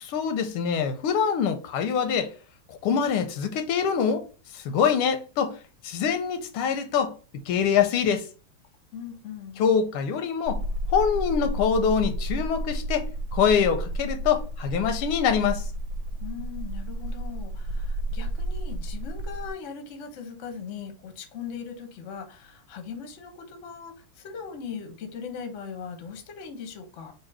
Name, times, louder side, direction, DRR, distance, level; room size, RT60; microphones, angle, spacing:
voice 1, 0.0-2.3 2.7-4.3 4.5-5.6 5.8-7.1 7.5-8.3 9.6-10.6 10.9-13.1 13.3-15.6, left 7 dB, 85° left, 1.6 m, -24 dB
voice 2, 8.9-9.6 16.2-27.1, left 6 dB, 55° left, 0.8 m, -39 dB
sound 1, 10.5-19.5, right 1 dB, 75° right, 1.3 m, -31 dB
3.8 x 2.7 x 4.5 m
omnidirectional pair, 2.3 m